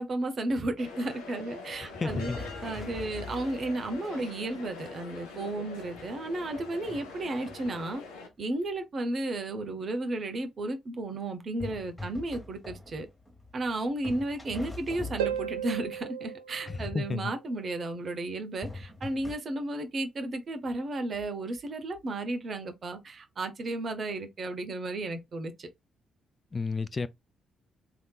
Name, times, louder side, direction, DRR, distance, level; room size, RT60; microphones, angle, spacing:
voice 1, 0.0-2.3 2.6-8.0 8.4-13.1 13.5-25.7, right 2 dB, 45° right, 0.8 m, -33 dB
sound 1, 0.8-8.3, left 3 dB, 75° left, 0.8 m, -44 dB
sound 2, 1.7-4.5 5.1-5.2 5.7-7.9 11.6-13.7 14.0-15.8 18.6-19.4, left 2 dB, 10° left, 1.7 m, -43 dB
voice 2, 1.8-2.4 16.7-17.3 26.5-27.1, left 4 dB, 35° left, 0.3 m, -32 dB
Harp, 15.2-17.7 21.2-21.3, right 8 dB, 80° right, 0.3 m, -35 dB
3.3 x 2.8 x 2.3 m
figure-of-eight pair, 40°, 0 cm